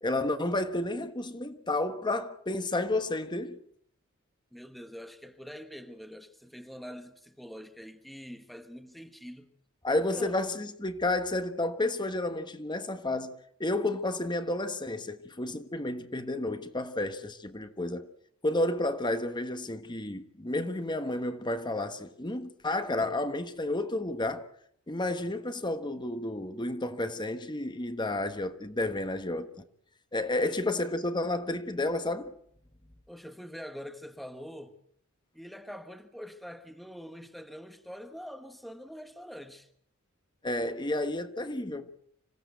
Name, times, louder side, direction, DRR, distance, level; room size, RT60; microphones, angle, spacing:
voice 1, 0.0-3.6 9.8-18.1 18.4-24.5 24.9-29.5 30.1-32.3 40.4-42.1, left 2 dB, 20° left, 1.3 m, -31 dB
voice 2, 4.5-9.5 10.1-10.4 30.4-30.6 33.1-34.8 35.3-39.7, equal, ahead, 1.1 m, -44 dB
26.0 x 16.5 x 8.1 m
head